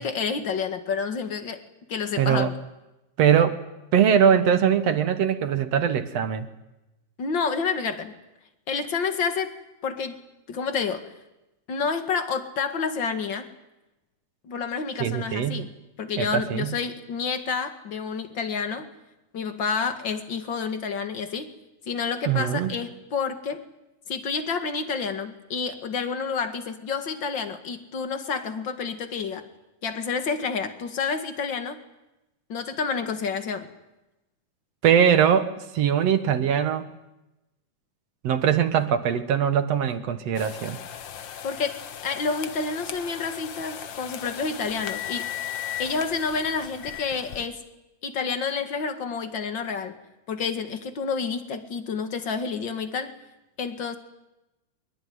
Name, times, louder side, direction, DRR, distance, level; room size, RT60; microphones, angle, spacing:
voice 1, 0.0-2.5 7.2-8.1 8.7-9.5 9.8-10.2 10.5-11.1 11.7-13.5 14.4-15.7 16.0-18.9 19.3-21.5 21.9-23.6 24.1-29.4 29.8-31.8 32.5-33.7 41.4-45.3 45.8-47.6 48.0-49.9 50.3-53.1 53.6-53.9, left 5 dB, 40° left, 7 dB, 2.2 m, -29 dB
voice 2, 2.2-2.5 3.2-3.6 3.9-6.5 15.0-15.7 16.2-16.7 22.3-22.7 34.8-36.9 38.2-40.8, right 8 dB, 60° right, 9 dB, 2.1 m, -21 dB
sound 1, 40.3-47.4, left 10 dB, 90° left, 1.0 m, -37 dB
23.5 x 22.0 x 9.5 m, 0.96 s
omnidirectional pair, 3.8 m